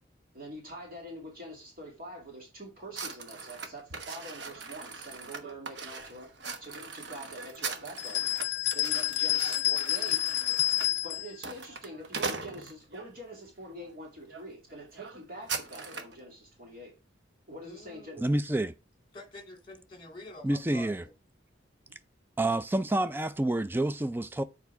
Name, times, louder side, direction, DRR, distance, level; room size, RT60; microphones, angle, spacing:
voice 1, 0.3-6.3 6.6-8.2 8.7-10.2 11.0-16.9 17.5-18.2 21.9-22.0, right 1 dB, 45° right, 2.4 m, -45 dB
sound 1, 2.9-13.1 13.7-13.9 14.3-14.4 14.7-16.2, right 4 dB, 65° right, 1.0 m, -40 dB
sound 2, 8.0-11.3, left 14 dB, 60° left, 0.3 m, -29 dB
voice 2, 17.6-18.2 19.1-21.1, left 1 dB, 25° left, 1.9 m, -47 dB
voice 3, 18.2-18.7 20.4-21.0 22.4-24.4, right 1 dB, 10° right, 0.4 m, -28 dB
7.2 x 4.5 x 4.7 m
head